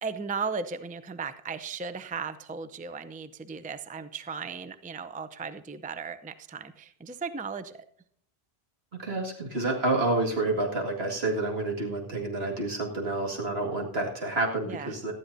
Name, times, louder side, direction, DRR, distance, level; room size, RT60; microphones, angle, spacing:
voice 1, 0.0-7.8 14.6-14.9, right 5 dB, 10° right, 12 dB, 0.4 m, -36 dB
voice 2, 9.0-15.1, right 2 dB, 80° right, 0 dB, 2.3 m, -29 dB
18.0 x 12.5 x 2.7 m, 0.67 s
omnidirectional pair, 1.0 m